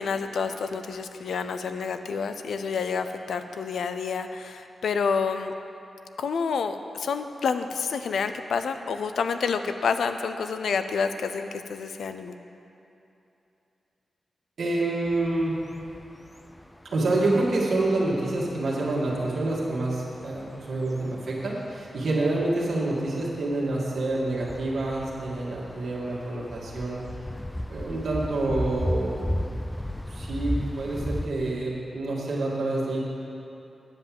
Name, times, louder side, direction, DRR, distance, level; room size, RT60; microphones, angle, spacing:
voice 1, 0.0-5.5 6.2-12.4, left 5 dB, 85° left, 9 dB, 0.5 m, -28 dB
voice 2, 14.6-15.6 16.9-27.0 27.7-29.5 30.1-33.0, right 2 dB, 75° right, -5 dB, 1.8 m, -27 dB
sound 1, 15.0-31.3, left 1 dB, 15° left, 0.4 m, -36 dB
9.7 x 5.5 x 7.5 m, 2.9 s
cardioid pair, 70°, 0 cm